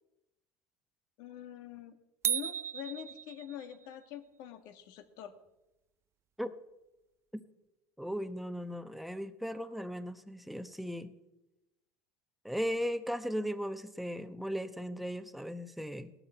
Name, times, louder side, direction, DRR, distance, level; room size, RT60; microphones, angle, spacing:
voice 1, 1.2-2.0 2.2-5.3, left 10 dB, 70° left, 7 dB, 1.7 m, -45 dB
sound 1, 2.2-3.8, right 9 dB, 40° right, 0.4 m, -35 dB
voice 2, 8.0-11.1 12.4-16.1, equal, ahead, 10 dB, 0.9 m, -37 dB
17.5 x 12.0 x 4.5 m, 0.95 s
supercardioid pair, 100°, 7 cm